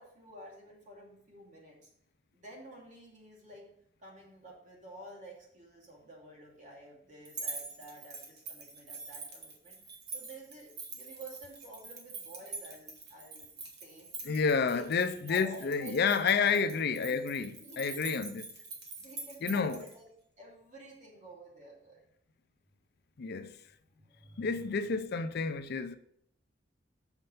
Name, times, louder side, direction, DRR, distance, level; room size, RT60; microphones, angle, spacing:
voice 1, 0.0-1.9 2.3-3.6 4.0-9.8 10.1-10.7 10.9-13.5 13.8-14.1 14.4-14.9 15.3-16.0 16.4-18.0 19.0-20.1 20.4-22.0 23.9-24.9, right 1 dB, 40° right, 2.6 m, -50 dB
sound 1, 7.2-19.9, right 3 dB, 60° right, 1.7 m, -45 dB
voice 2, 14.2-18.4 19.4-19.8 23.2-23.5 24.4-26.0, left 5 dB, 60° left, 0.5 m, -30 dB
6.5 x 5.9 x 5.5 m
head